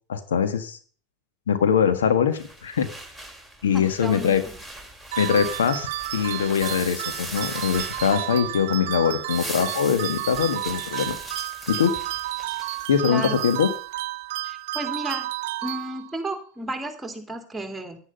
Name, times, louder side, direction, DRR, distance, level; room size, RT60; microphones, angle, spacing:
voice 1, 0.1-0.8 1.5-2.9 3.6-4.4 5.2-11.2 11.7-11.9 12.9-13.7, left 7 dB, 85° left, 10 dB, 1.4 m, -22 dB
sound 1, 2.3-8.7 9.1-13.8, right 1 dB, 10° left, 3.6 m, -40 dB
voice 2, 3.7-4.6 13.1-13.4 14.4-15.3 15.6-18.0, right 1 dB, 10° right, 5 dB, 2.7 m, -33 dB
sound 2, 5.1-16.3, right 17 dB, 70° right, 0.5 m, -32 dB
10.5 x 9.8 x 5.3 m, 0.41 s
hypercardioid pair, 100°, 0 cm